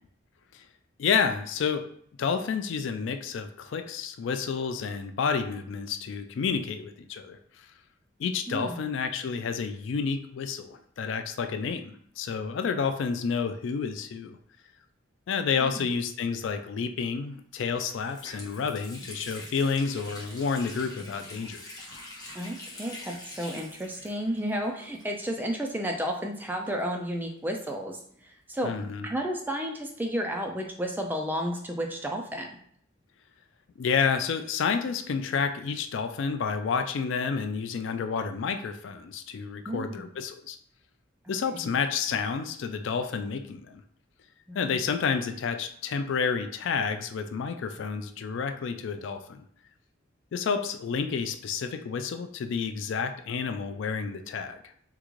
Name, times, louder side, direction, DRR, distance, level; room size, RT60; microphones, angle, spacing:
voice 1, 1.0-1.8 2.2-7.7 8.2-14.4 15.3-21.6 28.6-29.1 33.8-40.6 41.3-43.8 44.5-49.4 50.3-54.6, left 5 dB, 65° left, 8 dB, 0.3 m, -30 dB
voice 2, 8.5-8.8 15.6-15.8 22.3-28.7 29.0-32.5 39.7-40.0 41.3-41.7 44.5-44.8, equal, 10° right, 2 dB, 0.3 m, -32 dB
Water tap faucet, 17.3-17.4 17.7-25.5 25.7-25.8 26.6-28.2, left 1 dB, 20° left, 0.8 m, -45 dB
3.6 x 2.4 x 3.0 m, 0.64 s
head